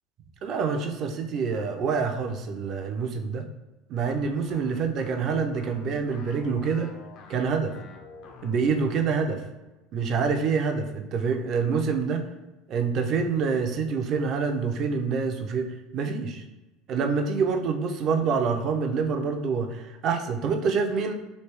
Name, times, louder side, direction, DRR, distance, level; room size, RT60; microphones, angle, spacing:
voice 1, 0.4-3.5 3.9-6.9 7.3-7.7 8.4-9.4 9.9-12.2 12.7-16.4 16.9-21.1, right 5 dB, 35° right, 5 dB, 0.4 m, -26 dB
sound 1, 4.1-9.2, left 5 dB, 40° left, 0.5 m, -46 dB
3.2 x 2.6 x 4.5 m, 1.1 s
cardioid pair, 175°, 0 cm